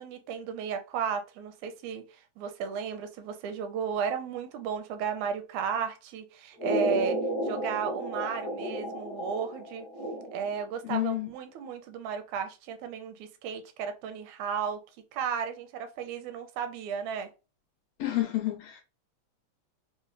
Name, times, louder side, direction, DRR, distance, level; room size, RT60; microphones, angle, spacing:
voice 1, 0.0-2.0 2.4-9.9 10.3-14.8 15.1-17.3, right 7 dB, 85° right, 2.0 m, -34 dB
sound 1, 6.6-10.6, equal, 50° left, 1.1 m, -33 dB
voice 2, 10.8-11.3 18.0-18.8, left 15 dB, 75° left, 1.8 m, -29 dB
5.0 x 2.0 x 2.5 m
omnidirectional pair, 3.4 m